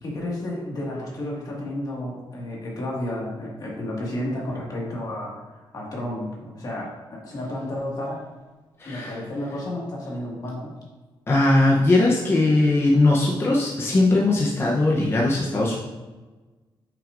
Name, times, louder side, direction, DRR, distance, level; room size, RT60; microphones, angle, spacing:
voice 1, 0.0-5.3 5.7-8.3 8.9-10.8, left 1 dB, 45° left, -3 dB, 1.9 m, -31 dB
voice 2, 8.8-9.1 11.3-15.7, left 2 dB, 25° left, -4 dB, 0.8 m, -19 dB
8.6 x 5.9 x 2.6 m, 1.3 s
wide cardioid pair, 170°, 9 cm